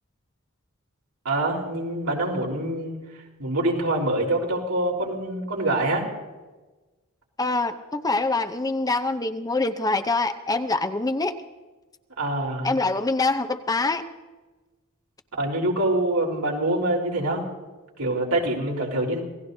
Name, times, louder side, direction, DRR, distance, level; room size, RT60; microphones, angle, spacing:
voice 1, 1.2-2.9 3.4-6.1 12.2-12.8 15.3-17.5 18.0-19.2, right 1 dB, 80° right, -2 dB, 4.0 m, -25 dB
voice 2, 7.4-11.3 12.6-14.0, left 3 dB, 15° left, 7 dB, 0.7 m, -25 dB
27.5 x 17.5 x 2.7 m, 1.2 s
head